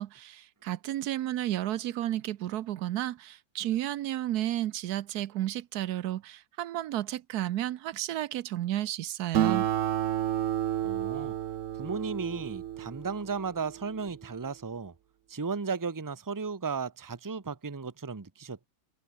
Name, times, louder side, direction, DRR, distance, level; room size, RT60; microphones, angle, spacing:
voice 1, 0.0-9.7, right 13 dB, 80° right, 1.2 m, -32 dB
Acoustic guitar, 9.3-14.2, right 11 dB, 60° right, 1.0 m, -31 dB
voice 2, 10.8-11.3 11.8-14.9 15.3-18.7, right 5 dB, 15° right, 0.9 m, -35 dB
omnidirectional pair, 1.7 m